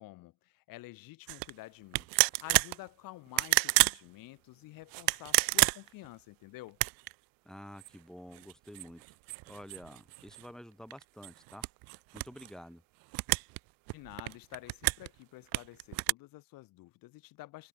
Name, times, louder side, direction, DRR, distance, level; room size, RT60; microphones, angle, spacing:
voice 1, 0.0-6.8 13.9-17.7, left 18 dB, 75° left, 3.4 m, -49 dB
sound 1, 1.3-1.5 1.9-2.8 3.3-4.0 4.9-6.1 6.7-7.1 7.8-7.9 8.3-10.5 10.9-12.5 13.1-13.6 13.9-15.1 15.5-16.1, right 25 dB, 80° right, 0.8 m, -29 dB
voice 2, 7.4-9.0 9.5-11.6 12.1-12.8, equal, ahead, 4.7 m, -49 dB
supercardioid pair, 65°, 34 cm